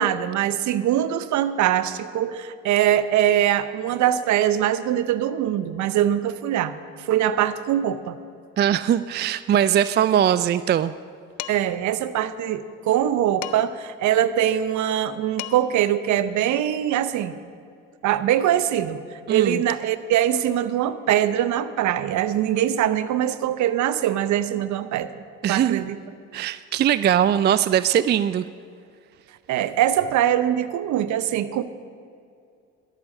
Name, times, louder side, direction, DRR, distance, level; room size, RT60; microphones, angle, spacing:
voice 1, 0.0-8.2 11.5-17.3 18.0-19.0 19.3-25.2 25.5-26.0 29.5-31.6, right 11 dB, 60° right, 13 dB, 0.9 m, -22 dB
voice 2, 8.6-10.9 19.3-19.6 25.4-25.8 26.3-28.4, right 10 dB, 30° right, 15 dB, 0.4 m, -20 dB
Dishes pots and pans, 11.4-11.8 13.4-13.9 15.0-15.1 15.4-15.8, left 13 dB, 60° left, 0.7 m, -36 dB
13.0 x 11.5 x 6.4 m, 2.4 s
hypercardioid pair, 60°, 33 cm